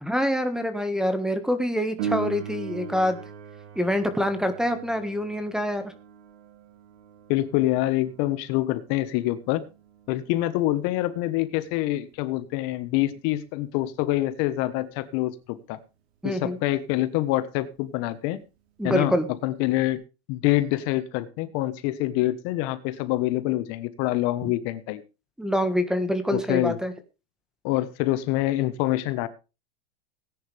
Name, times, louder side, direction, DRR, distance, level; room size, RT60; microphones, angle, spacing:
voice 1, 0.0-3.2 3.7-5.9 16.2-16.6 18.8-19.3 24.4-24.5 25.4-26.9, equal, ahead, 10 dB, 1.6 m, -26 dB
Piano, 2.0-12.4 19.9-20.0, right 6 dB, 75° right, 4.3 m, -39 dB
voice 2, 7.3-9.6 10.1-15.8 16.2-18.4 18.8-19.2 19.4-20.0 20.3-25.0 26.3-26.8 27.6-29.3, left 16 dB, 45° left, 13 dB, 1.3 m, -26 dB
18.5 x 10.0 x 3.4 m, 0.30 s
supercardioid pair, 140°, 32 cm